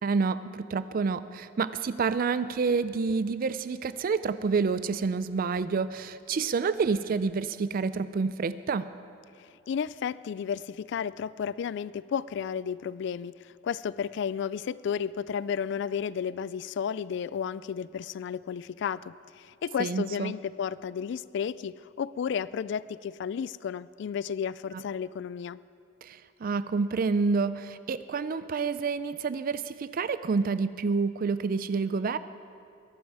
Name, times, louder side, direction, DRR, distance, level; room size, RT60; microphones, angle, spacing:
voice 1, 0.0-8.9 19.8-20.3 24.7-24.8 26.0-32.2, right 4 dB, 50° right, 14 dB, 0.4 m, -28 dB
voice 2, 9.4-25.6, left 7 dB, 65° left, 18 dB, 0.3 m, -33 dB
21.5 x 11.5 x 4.8 m, 2.4 s
head